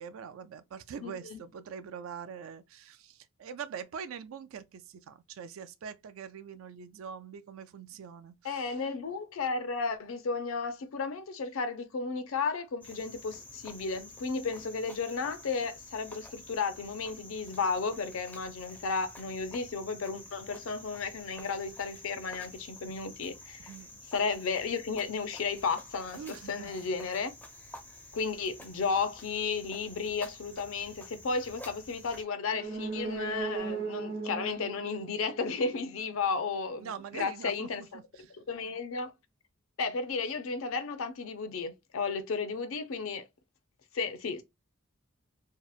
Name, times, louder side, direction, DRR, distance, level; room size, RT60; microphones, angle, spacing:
voice 1, 0.0-8.8 23.7-24.0 26.2-26.9 36.8-37.9 38.1-38.3, right 7 dB, 75° right, 0.3 m, -43 dB
voice 2, 1.0-1.4 8.4-23.6 24.1-27.3 28.1-36.9 37.1-37.8 38.5-39.1 39.8-43.2 43.9-44.4, left 4 dB, 75° left, 0.5 m, -33 dB
Cricket, 12.8-32.2, left 2 dB, 10° left, 0.4 m, -50 dB
sound 1, 32.4-36.2 36.5-36.6, right 4 dB, 60° right, 0.9 m, -37 dB
2.8 x 2.0 x 2.4 m
head